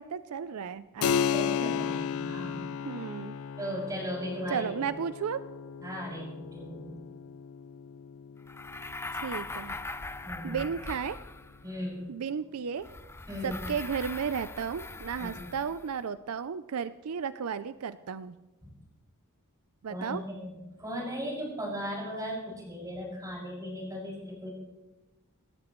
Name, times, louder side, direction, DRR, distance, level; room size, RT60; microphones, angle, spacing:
voice 1, 0.0-1.2 2.8-3.4 4.5-5.4 9.1-9.8 10.4-11.2 12.1-12.9 13.4-18.4 19.8-20.2, right 7 dB, 75° right, 14 dB, 0.5 m, -34 dB
Keyboard (musical), 1.0-11.2, left 7 dB, 65° left, 0.4 m, -35 dB
voice 2, 1.3-2.6 3.6-4.6 5.8-7.0 10.2-10.6 11.6-12.1 13.3-13.6 15.2-15.4 18.6-18.7 19.9-24.5, equal, 15° right, -4 dB, 6.4 m, -37 dB
sound 1, 8.5-11.7 12.8-16.0, left 2 dB, 10° left, 0.5 m, -41 dB
27.0 x 13.5 x 3.1 m, 1.1 s
head